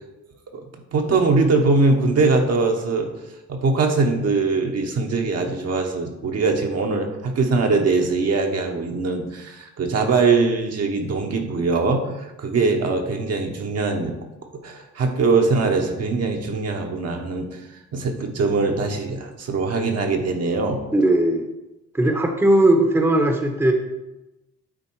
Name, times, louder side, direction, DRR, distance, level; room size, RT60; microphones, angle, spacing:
voice 1, 0.9-3.1 3.5-14.1 14.6-17.6 17.9-20.8, right 3 dB, 55° right, 3 dB, 1.2 m, -22 dB
voice 2, 20.9-21.4 21.9-23.7, right 1 dB, 10° right, 4 dB, 0.9 m, -18 dB
9.2 x 3.7 x 4.7 m, 1.0 s
cardioid pair, 90°, 30 cm